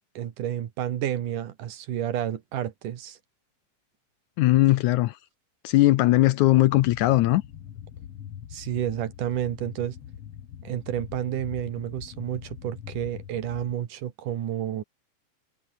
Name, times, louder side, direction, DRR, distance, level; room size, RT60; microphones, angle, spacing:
voice 1, 0.1-3.2 8.5-10.0 10.6-14.8, right 10 dB, 70° right, 3.1 m, -30 dB
voice 2, 4.4-5.1 5.6-7.4, left 16 dB, 75° left, 1.9 m, -19 dB
sound 1, 6.7-13.7, left 9 dB, 55° left, 2.2 m, -43 dB
omnidirectional pair, 3.8 m